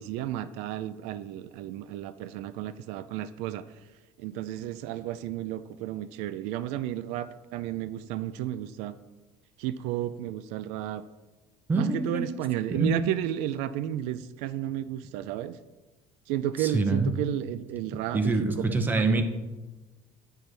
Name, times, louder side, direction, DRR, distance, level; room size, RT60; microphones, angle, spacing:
voice 1, 0.0-3.6 4.2-8.9 9.6-11.0 11.7-15.6 16.3-19.2, right 12 dB, 80° right, 14 dB, 0.4 m, -32 dB
voice 2, 11.7-12.3 12.7-12.9 16.6-17.1 18.1-19.2, right 3 dB, 15° right, 7 dB, 0.9 m, -25 dB
10.0 x 9.2 x 3.4 m, 1.2 s
cardioid pair, 155°, 11 cm